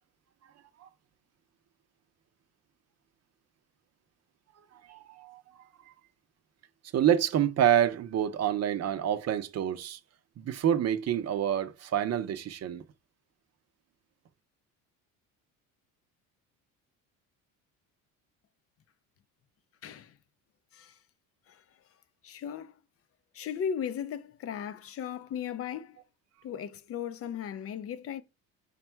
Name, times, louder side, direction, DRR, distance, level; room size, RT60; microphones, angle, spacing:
voice 1, 4.9-5.4 6.9-10.0 10.4-12.8, right 10 dB, 45° right, 0.6 m, -27 dB
voice 2, 19.8-20.1 20.7-21.0 21.5-21.6 22.2-22.7 23.3-26.0 26.4-28.2, left 8 dB, 40° left, 0.4 m, -36 dB
5.1 x 2.3 x 4.4 m
supercardioid pair, 95°, 38 cm